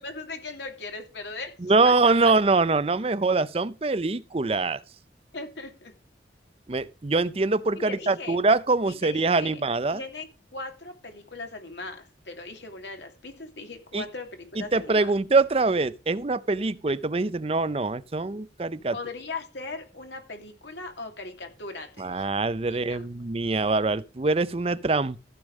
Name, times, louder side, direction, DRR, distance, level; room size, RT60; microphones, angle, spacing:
voice 1, 0.0-1.5 1.8-2.3 5.3-5.9 7.8-8.4 8.9-9.6 9.9-15.1 18.9-22.3 22.7-23.0, left 3 dB, 90° left, 2.8 m, -39 dB
voice 2, 1.6-4.8 6.7-10.0 13.9-14.0 14.6-19.0 22.0-25.2, right 3 dB, 35° right, 0.6 m, -24 dB
15.5 x 5.3 x 6.4 m
head